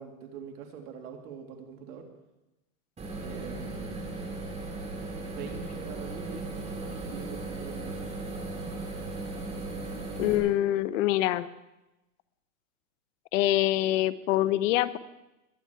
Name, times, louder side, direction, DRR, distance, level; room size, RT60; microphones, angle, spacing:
voice 1, 0.0-2.1 3.2-4.2 5.2-8.2, right 6 dB, 80° right, 3 dB, 3.1 m, -44 dB
sound 1, 3.0-10.4, right 2 dB, 15° right, 3.7 m, -37 dB
voice 2, 10.2-11.5 13.3-15.0, left 14 dB, 60° left, 15 dB, 0.8 m, -25 dB
21.5 x 9.9 x 4.7 m, 0.97 s
supercardioid pair, 140°, 44 cm